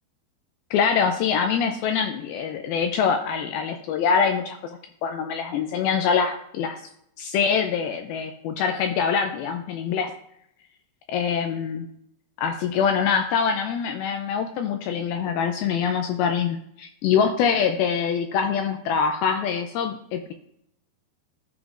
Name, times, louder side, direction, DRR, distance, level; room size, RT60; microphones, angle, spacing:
voice 1, 0.7-6.8 7.2-10.1 11.1-11.9 12.4-20.3, left 6 dB, 80° left, 6 dB, 2.2 m, -24 dB
14.5 x 5.0 x 2.4 m, 0.74 s
omnidirectional pair, 4.7 m